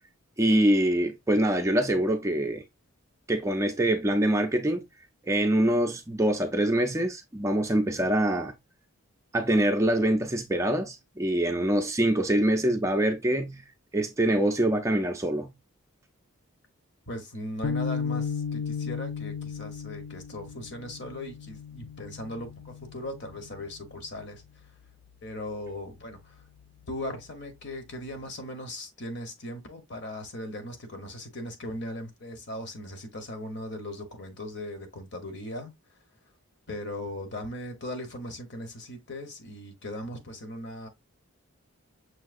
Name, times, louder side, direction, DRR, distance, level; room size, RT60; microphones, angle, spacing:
voice 1, 0.4-2.6 3.3-4.8 5.3-8.5 9.3-13.6 13.9-15.5, right 1 dB, 15° right, 0.4 m, -24 dB
voice 2, 17.1-24.7 25.2-26.4 26.9-36.0 36.7-40.9, left 1 dB, 55° left, 1.0 m, -38 dB
sound 1, 17.6-24.1, left 6 dB, 90° left, 0.4 m, -35 dB
6.2 x 2.8 x 2.5 m
head